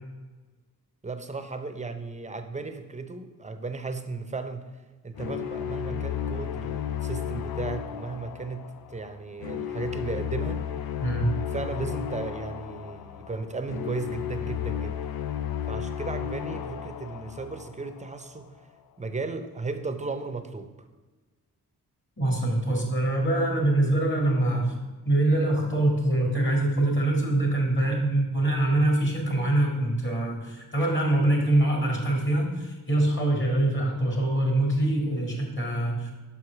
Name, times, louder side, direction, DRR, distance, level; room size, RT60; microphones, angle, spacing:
voice 1, 1.0-4.6 5.0-8.6 8.9-10.6 11.5-15.0 15.7-18.5 19.0-20.7, right 3 dB, 20° right, 8 dB, 0.7 m, -35 dB
sound 1, 5.2-18.2, left 9 dB, 75° left, 0.6 m, -33 dB
voice 2, 11.0-11.3 22.2-24.8 25.1-36.1, right 1 dB, 30° left, 1 dB, 2.1 m, -24 dB
5.7 x 4.9 x 5.8 m, 1.3 s
cardioid pair, 75°, 36 cm